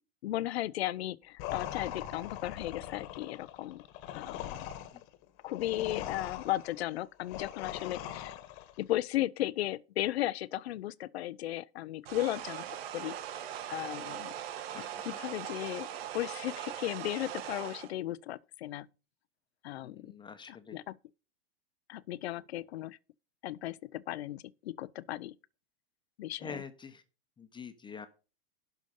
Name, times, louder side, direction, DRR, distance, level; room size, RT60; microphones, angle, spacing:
voice 1, 0.2-3.8 4.1-4.7 5.4-8.3 8.8-12.6 12.9-13.1 13.7-14.3 15.1-15.9 16.1-18.9 19.6-20.1 20.5-20.9 21.9-23.0 23.4-25.3 26.2-26.6, left 15 dB, 75° left, 0.7 m, -35 dB
sound 1, 1.4-8.8, left 11 dB, 50° left, 1.4 m, -41 dB
sound 2, 12.0-17.9, right 10 dB, 65° right, 1.4 m, -40 dB
voice 2, 14.7-15.2 19.8-20.8 26.4-27.0 27.4-28.1, left 5 dB, 15° left, 1.0 m, -46 dB
12.0 x 5.2 x 5.4 m
hypercardioid pair, 120°, 32 cm